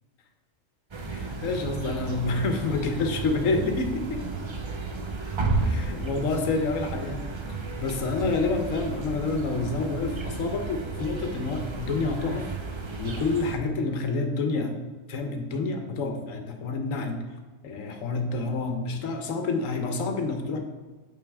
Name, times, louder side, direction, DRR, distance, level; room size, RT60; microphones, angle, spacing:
sound 1, 0.9-13.6, right 3 dB, 35° right, 0.5 m, -33 dB
voice 1, 1.1-4.2 5.6-7.3 7.8-12.5 13.0-14.7 15.1-17.2 17.6-20.6, left 3 dB, 90° left, 5 dB, 1.2 m, -28 dB
8.5 x 4.1 x 3.4 m, 1.3 s
omnidirectional pair, 1.3 m